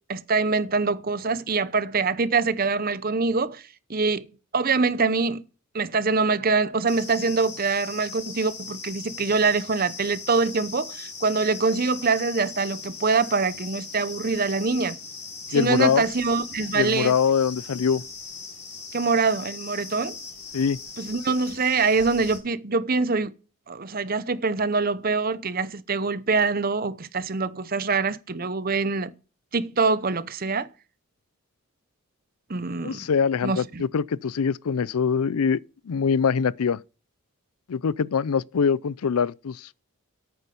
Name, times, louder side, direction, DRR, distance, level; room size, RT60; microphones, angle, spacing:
voice 1, 0.1-3.6 3.9-4.3 4.5-5.5 5.7-15.0 15.5-17.1 18.9-20.2 21.0-23.3 23.7-29.1 29.5-30.7 32.5-33.1 33.4-33.8, right 4 dB, 40° right, 0.8 m, -24 dB
sound 1, 6.9-22.4, left 5 dB, 30° left, 4.1 m, -39 dB
voice 2, 15.5-16.1 16.7-18.0 20.5-20.8 32.8-35.6 35.9-36.8 37.7-39.8, left 6 dB, 80° left, 0.5 m, -23 dB
10.5 x 8.9 x 5.3 m
head